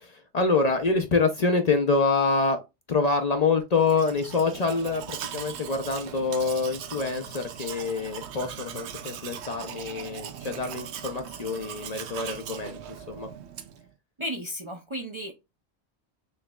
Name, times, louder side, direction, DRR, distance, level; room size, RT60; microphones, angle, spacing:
voice 1, 0.0-2.6 2.9-12.8 13.1-13.3, left 4 dB, 45° left, 0.6 m, -26 dB
Domestic sounds home sounds, 3.8-13.9, right 9 dB, 90° right, 0.9 m, -39 dB
voice 2, 14.2-15.3, equal, 35° right, 0.5 m, -34 dB
6.6 x 3.1 x 2.2 m
omnidirectional pair, 1.1 m